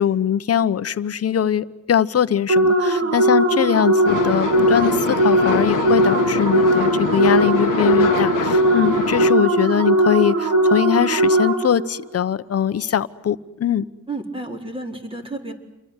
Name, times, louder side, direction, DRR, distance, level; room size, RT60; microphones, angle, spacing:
voice 1, 0.0-13.8, left 9 dB, 50° left, 14 dB, 1.1 m, -21 dB
sound 1, 2.5-11.9, right 1 dB, 55° right, 5.6 m, -19 dB
sound 2, 4.1-9.3, left 11 dB, 85° left, 1.2 m, -25 dB
voice 2, 14.1-15.5, right 2 dB, 15° right, 3 dB, 4.4 m, -32 dB
29.0 x 23.0 x 8.2 m, 0.94 s
cardioid pair, 95°, 31 cm